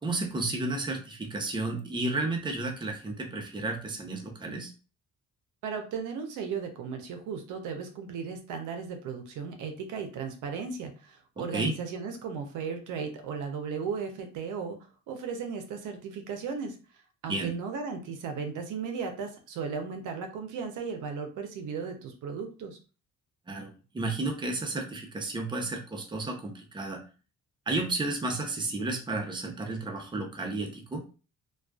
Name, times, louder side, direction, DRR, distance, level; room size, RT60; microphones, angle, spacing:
voice 1, 0.0-4.7 11.4-11.7 17.3-17.5 23.5-27.0 27.7-31.0, right 2 dB, 15° right, 2 dB, 0.6 m, -32 dB
voice 2, 5.6-14.8 15.1-16.8 17.2-22.8, right 5 dB, 80° right, 5 dB, 0.6 m, -36 dB
2.4 x 2.3 x 2.3 m, 0.35 s
cardioid pair, 90°, 30 cm